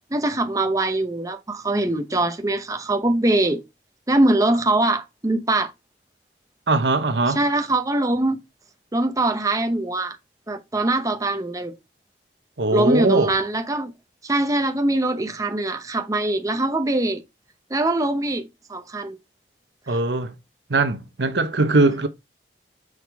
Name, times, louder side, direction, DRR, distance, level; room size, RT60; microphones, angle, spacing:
voice 1, 0.1-3.6 4.1-5.7 7.3-8.4 8.9-10.2 10.5-11.7 12.7-13.9 14.2-17.2 17.7-19.2, right 2 dB, 20° right, 0.8 m, -22 dB
voice 2, 6.7-7.4 12.6-13.3 19.9-20.3 20.7-22.1, right 3 dB, 80° right, 1.0 m, -20 dB
6.5 x 6.1 x 3.4 m
head